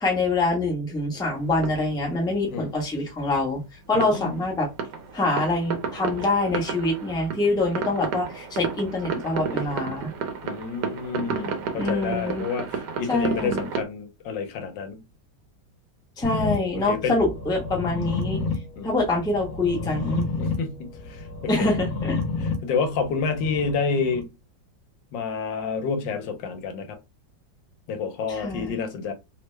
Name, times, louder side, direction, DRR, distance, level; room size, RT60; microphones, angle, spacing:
voice 1, 0.0-3.6 3.9-4.7 5.1-10.1 11.8-12.5 13.1-13.7 16.2-18.4 18.8-20.3 21.5-22.2 28.3-28.8, left 2 dB, 5° left, 0.6 m, -25 dB
sound 1, 1.2-2.8 3.9-13.8, right 6 dB, 70° right, 1.3 m, -32 dB
voice 2, 3.9-4.4 10.4-15.0 16.9-17.2 18.8-18.9 20.4-21.2 21.6-21.7 22.4-24.3 25.1-27.0 27.9-29.1, left 5 dB, 80° left, 1.4 m, -29 dB
sound 2, 16.2-24.2, left 4 dB, 60° left, 1.3 m, -31 dB
3.3 x 2.1 x 3.2 m
omnidirectional pair, 2.0 m